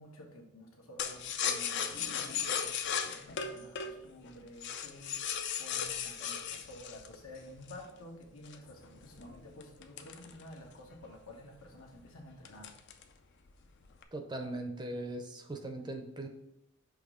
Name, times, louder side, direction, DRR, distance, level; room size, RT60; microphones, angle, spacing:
voice 1, 0.0-2.7 3.0-12.7, left 1 dB, 85° left, 0 dB, 1.4 m, -51 dB
sound 1, 1.0-7.9 8.5-10.9 11.3-11.4 11.7-12.0 12.5-13.2 13.5-14.0, left 7 dB, 55° left, 0.5 m, -36 dB
voice 2, 14.1-16.3, right 1 dB, 20° right, 5 dB, 0.6 m, -39 dB
6.2 x 3.1 x 5.0 m, 0.87 s
head